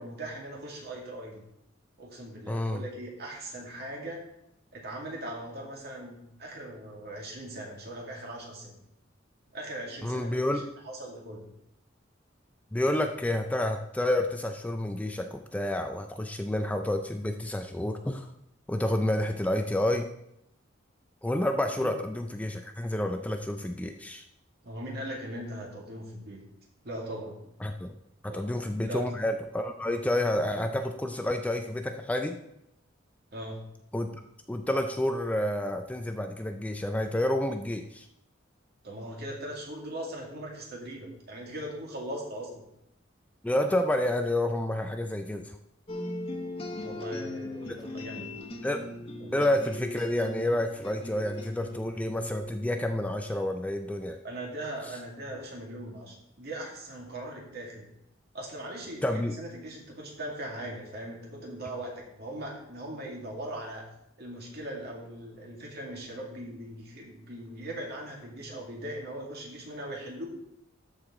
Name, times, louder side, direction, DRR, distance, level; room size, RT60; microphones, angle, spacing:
voice 1, 0.0-1.4 2.0-4.2 4.7-8.8 9.5-11.4 21.7-21.9 24.6-26.4 26.8-27.4 28.3-28.5 28.8-29.1 33.3-33.6 38.8-42.6 46.8-48.3 49.2-49.4 54.2-57.9 58.3-63.9 64.2-70.3, right 1 dB, 55° right, -1 dB, 2.3 m, -40 dB
voice 2, 2.5-2.8 10.0-10.6 12.7-18.3 18.7-20.1 21.2-24.2 27.6-27.9 28.2-32.4 33.9-34.1 34.5-38.1 43.4-45.6 48.6-48.8 49.3-54.2 59.0-59.4, left 1 dB, 10° left, 6 dB, 0.4 m, -29 dB
sound 1, 45.9-53.4, left 1 dB, 30° left, 1.3 m, -39 dB
13.0 x 4.9 x 3.8 m, 0.80 s
head